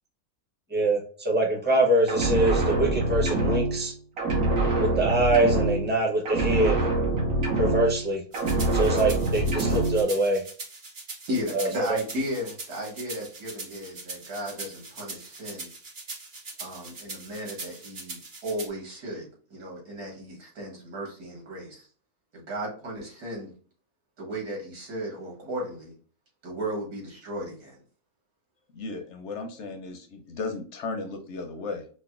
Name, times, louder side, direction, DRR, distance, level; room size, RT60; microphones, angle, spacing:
voice 1, 0.7-3.9 4.8-6.8 7.6-8.2 8.7-10.4 11.5-11.7, right 1 dB, 10° right, -1 dB, 0.6 m, -24 dB
sound 1, 2.1-3.9 4.2-6.0 6.3-8.1 8.3-10.0, right 2 dB, 70° right, 1.6 m, -25 dB
sound 2, 8.3-18.7, right 3 dB, 40° right, 0.8 m, -41 dB
voice 2, 11.3-15.7 16.6-21.9 22.3-23.5 24.2-26.0 26.4-27.8, equal, 90° right, -2 dB, 2.2 m, -35 dB
voice 3, 28.7-31.9, left 3 dB, 65° left, 6 dB, 0.7 m, -35 dB
5.2 x 2.1 x 2.3 m, 0.42 s
omnidirectional pair, 1.6 m